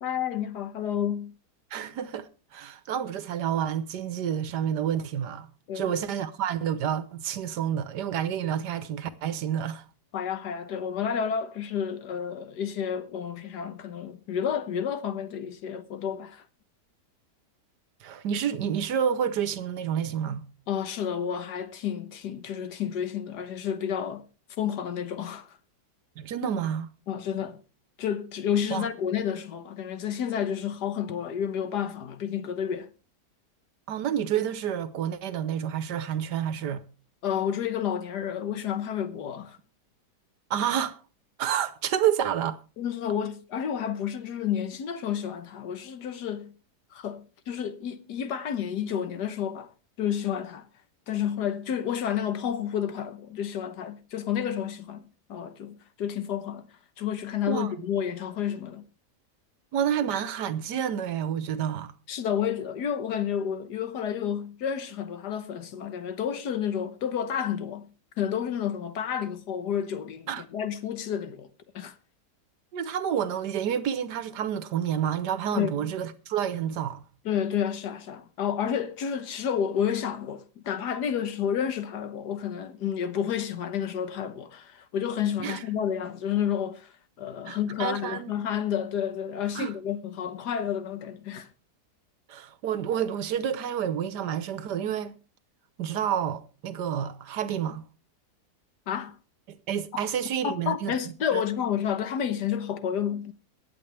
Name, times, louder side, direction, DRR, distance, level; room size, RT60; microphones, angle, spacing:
voice 1, 0.0-1.3 5.7-5.9 10.1-16.4 20.7-24.2 24.6-25.5 27.1-27.6 28.0-32.9 37.2-39.6 42.8-46.5 46.9-49.7 50.0-50.7 51.1-55.0 55.3-56.7 57.0-58.8 62.1-67.9 68.2-71.5 71.7-71.9 75.5-75.7 77.2-91.5 98.9-99.2 100.4-103.3, left 8 dB, 75° left, 1.7 m, -30 dB
voice 2, 1.7-5.5 5.7-9.8 18.0-20.4 26.2-26.9 28.7-28.9 33.9-36.8 40.5-41.0 41.4-42.6 57.5-57.7 59.7-61.9 70.3-70.4 72.7-77.0 85.4-85.6 87.5-88.3 89.5-89.7 92.3-95.1 95.8-97.8 99.5-100.9 101.3-101.4, right 9 dB, 80° right, 1.6 m, -29 dB
23.0 x 8.2 x 3.4 m
omnidirectional pair, 1.8 m